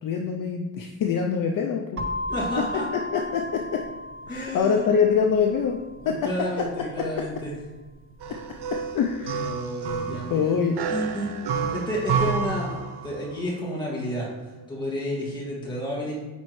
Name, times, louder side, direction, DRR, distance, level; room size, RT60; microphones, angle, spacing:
voice 1, 0.0-2.0 3.1-3.4 4.3-5.8 6.1-6.2 8.9-9.4 10.3-10.7, left 6 dB, 55° left, 2 dB, 0.6 m, -24 dB
sound 1, 2.0-9.8, left 1 dB, 35° right, 0.5 m, -37 dB
voice 2, 2.3-2.9 4.3-4.9 6.0-7.5 9.3-10.5 10.9-14.3 14.7-16.1, equal, 10° left, -6 dB, 2.2 m, -31 dB
sound 2, 8.2-13.4, right 6 dB, 75° right, 0.8 m, -30 dB
9.7 x 4.2 x 3.2 m, 1.2 s
cardioid pair, 155°, 40 cm